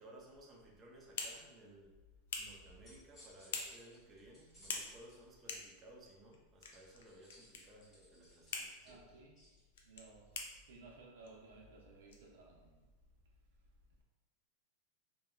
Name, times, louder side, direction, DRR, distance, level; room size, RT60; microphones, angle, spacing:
voice 1, 0.0-1.9 2.4-9.0, right 1 dB, 20° right, -2 dB, 0.4 m, -58 dB
sound 1, 0.6-13.0, left 4 dB, 80° left, 0.4 m, -49 dB
sound 2, 2.6-5.2 6.7-9.6, equal, 20° left, 1.2 m, -64 dB
voice 2, 8.8-9.4 9.8-12.9, right 3 dB, 85° right, -1 dB, 0.6 m, -58 dB
2.8 x 2.2 x 2.3 m, 1.2 s
supercardioid pair, 155°, 0 cm